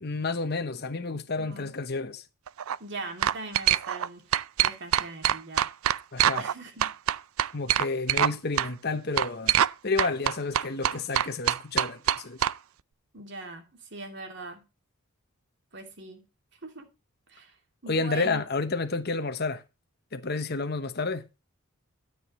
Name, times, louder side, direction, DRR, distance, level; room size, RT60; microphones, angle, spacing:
voice 1, 0.0-2.2 6.1-6.5 7.5-9.5 9.8-12.4 17.9-19.6 20.1-21.2, left 3 dB, 45° left, 1.0 m, -30 dB
voice 2, 1.4-1.8 2.8-5.7 6.4-6.9 13.1-14.6 15.7-16.2 16.6-16.9 17.3-17.6 17.8-18.5, right 2 dB, 55° right, 2.8 m, -41 dB
sound 1, 2.5-2.8 3.2-4.1 4.3-6.5 6.8-8.3 8.6-8.7 9.2-9.7 10.0-12.5, right 10 dB, 70° right, 0.4 m, -24 dB
12.5 x 8.1 x 3.2 m
head